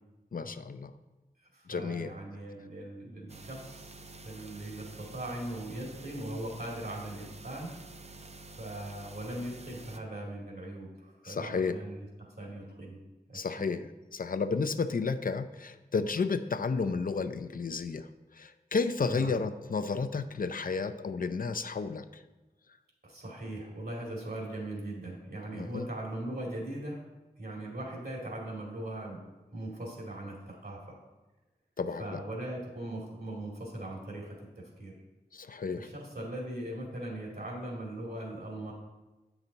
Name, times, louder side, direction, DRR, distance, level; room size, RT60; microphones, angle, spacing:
voice 1, 0.3-0.9 1.7-2.1 11.2-11.8 13.3-18.1 18.3-22.2 25.5-25.9 31.8-32.2 35.3-35.9, left 4 dB, 60° left, 10 dB, 0.5 m, -32 dB
voice 2, 1.5-3.9 4.2-7.7 8.6-13.0 13.3-13.7 19.0-19.3 23.0-27.0 27.4-29.2 29.5-31.0 32.0-34.9 35.8-38.7, right 1 dB, 75° right, -3 dB, 2.5 m, -40 dB
sound 1, 3.3-10.0, right 2 dB, 45° right, 0.6 m, -49 dB
8.5 x 5.9 x 4.0 m, 1.1 s
cardioid pair, 40°, 16 cm